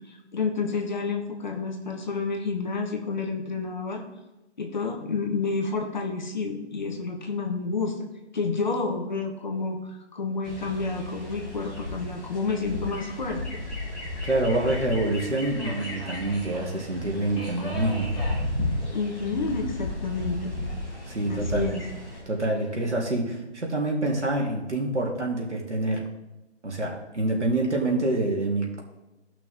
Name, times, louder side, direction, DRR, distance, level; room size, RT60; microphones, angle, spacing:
voice 1, 0.1-4.0 4.6-8.0 8.3-13.4 18.9-20.6 21.3-21.8, left 4 dB, 40° left, 2 dB, 1.5 m, -29 dB
sound 1, 10.4-22.2, left 2 dB, ahead, 2.6 m, -34 dB
Subway metro underground, 10.7-23.0, equal, 25° left, 3.7 m, -45 dB
voice 2, 14.2-18.1 21.1-21.7 22.3-26.0 26.6-28.8, right 2 dB, 80° right, -1 dB, 2.8 m, -26 dB
14.5 x 5.9 x 3.6 m, 1.0 s
figure-of-eight pair, 160°, 35 cm